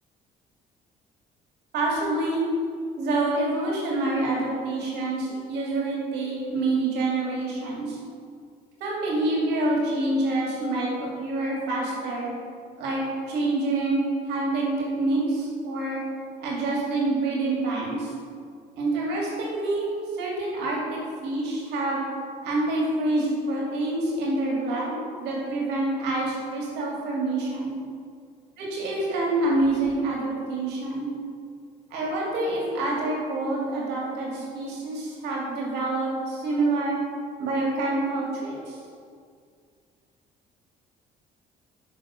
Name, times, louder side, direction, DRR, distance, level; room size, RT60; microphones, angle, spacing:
voice 1, 1.7-2.4 3.0-8.0 8.8-12.3 12.8-15.2 15.6-16.0 16.4-18.1 18.7-22.0 22.4-27.7 28.6-31.1 31.9-37.0 37.4-38.8, right 2 dB, 85° right, -3 dB, 2.1 m, -27 dB
6.5 x 5.7 x 5.5 m, 2.2 s
cardioid pair, 110°, 17 cm